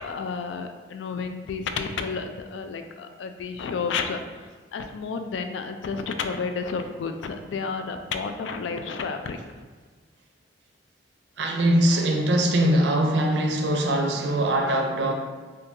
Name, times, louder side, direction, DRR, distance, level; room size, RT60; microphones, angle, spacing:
voice 1, 0.0-9.4, left 5 dB, 80° left, 7 dB, 0.3 m, -31 dB
voice 2, 11.4-15.1, right 1 dB, 70° right, 2 dB, 0.5 m, -22 dB
2.7 x 2.7 x 3.6 m, 1.4 s
head